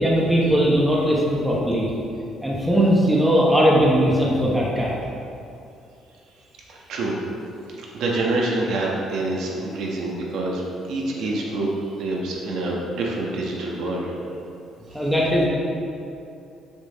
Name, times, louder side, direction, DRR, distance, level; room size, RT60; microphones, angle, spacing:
voice 1, 0.0-1.9 2.4-4.9 14.9-15.5, equal, 5° right, -5 dB, 1.0 m, -19 dB
voice 2, 6.7-7.2 7.9-10.6 10.9-11.7 12.0-14.1, right 2 dB, 65° right, -2 dB, 1.3 m, -26 dB
6.9 x 6.1 x 4.1 m, 2.6 s
cardioid pair, 165°, 0 cm